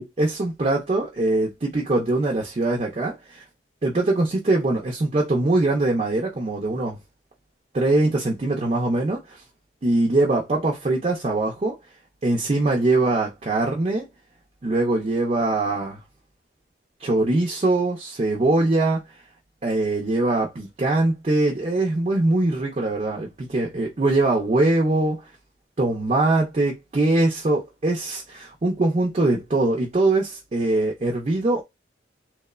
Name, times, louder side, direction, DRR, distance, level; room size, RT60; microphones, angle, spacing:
voice 1, 0.0-3.4 3.8-7.0 7.7-9.4 9.8-11.8 12.2-14.0 14.6-16.0 17.0-19.0 19.6-25.2 25.8-31.6, right 2 dB, 35° right, 0.5 m, -22 dB
3.0 x 2.0 x 2.3 m
head